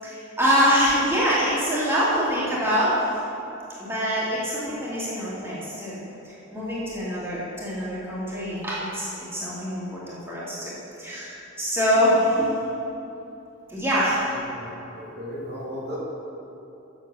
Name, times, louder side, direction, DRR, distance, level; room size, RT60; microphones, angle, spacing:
voice 1, 0.0-2.9 3.8-10.7 11.0-12.5 13.7-14.3, equal, 10° right, -8 dB, 2.1 m, -24 dB
voice 2, 14.3-16.0, left 1 dB, 60° right, -5 dB, 2.2 m, -36 dB
7.6 x 7.2 x 6.8 m, 2.9 s
head